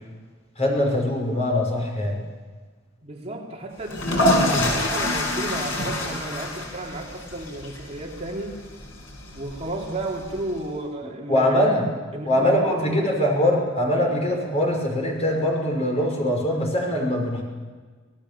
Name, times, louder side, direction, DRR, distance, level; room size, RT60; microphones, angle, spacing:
voice 1, 0.6-2.2 11.3-11.8 12.3-17.4, left 1 dB, 35° left, 0 dB, 6.1 m, -22 dB
voice 2, 3.0-8.6 9.3-11.8 12.1-13.3, right 2 dB, 30° right, -1 dB, 3.3 m, -33 dB
sound 1, 3.8-10.6, left 1 dB, 75° left, 6.2 m, -26 dB
26.5 x 17.5 x 7.0 m, 1.4 s
head